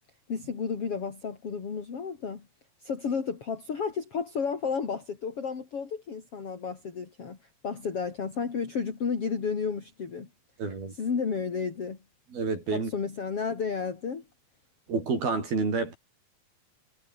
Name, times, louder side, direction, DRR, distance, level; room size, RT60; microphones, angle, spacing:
voice 1, 0.3-2.5 2.8-7.4 7.6-10.3 10.9-12.0 12.7-14.2, left 5 dB, 40° left, 3.9 m, -32 dB
voice 2, 10.6-10.9 12.3-12.9 14.9-16.0, right 4 dB, 85° right, 9.3 m, -29 dB
omnidirectional pair, 4.2 m